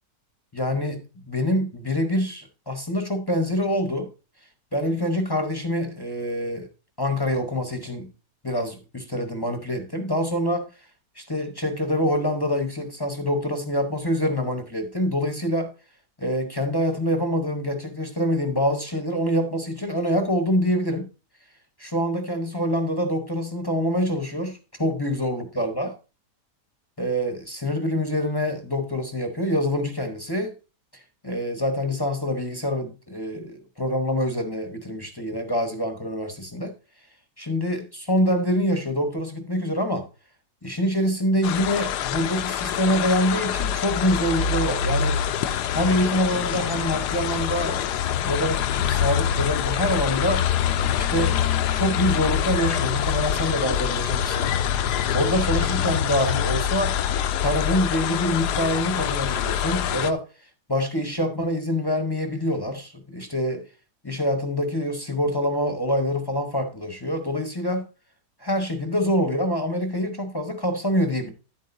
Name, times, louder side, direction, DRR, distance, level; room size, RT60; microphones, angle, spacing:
voice 1, 0.5-1.0 1.3-4.1 4.7-6.7 7.0-8.1 8.4-10.7 11.2-15.7 16.2-21.1 21.8-25.9 27.0-30.5 30.9-36.7 37.4-40.1 40.6-45.2 45.7-50.4 50.9-57.0 57.4-60.2 60.7-63.7 64.0-67.8 68.4-71.3, equal, 20° left, 0.7 m, -25 dB
sound 1, 41.4-60.1, left 9 dB, 80° left, 1.2 m, -25 dB
10.5 x 8.5 x 2.6 m
omnidirectional pair, 1.8 m